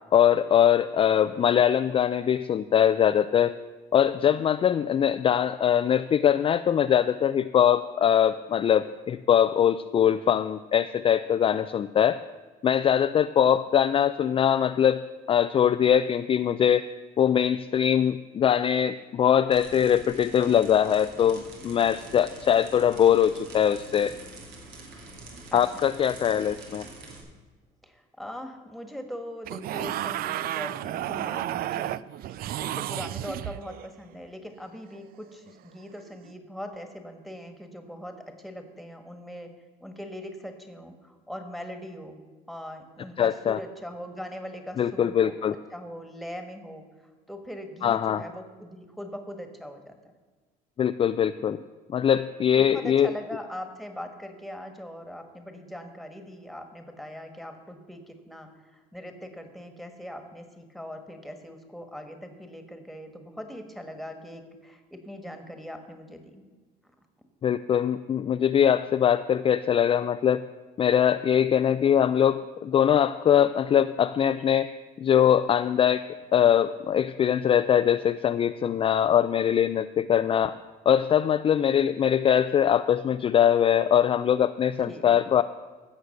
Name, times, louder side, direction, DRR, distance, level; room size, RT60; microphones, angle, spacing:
voice 1, 0.1-3.6 3.9-12.2 12.6-15.0 15.3-16.9 17.2-24.1 25.5-26.8 43.2-43.6 44.8-45.5 47.8-48.2 50.8-51.6 51.9-53.1 67.4-70.4 70.8-74.7 75.0-76.0 76.3-80.5 80.9-85.4, left 9 dB, 35° left, 10 dB, 0.3 m, -22 dB
sound 1, 19.5-27.2, right 3 dB, 80° right, 2.7 m, -45 dB
voice 2, 27.8-32.0 32.6-39.5 39.8-42.2 42.5-45.5 45.7-50.0 52.6-66.4 66.8-66.9 84.8-85.2, equal, ahead, 6 dB, 1.6 m, -41 dB
sound 2, 29.4-33.9 36.1-36.3, right 13 dB, 60° right, 0.4 m, -32 dB
16.0 x 6.5 x 6.5 m, 1.3 s
cardioid pair, 110°, 17 cm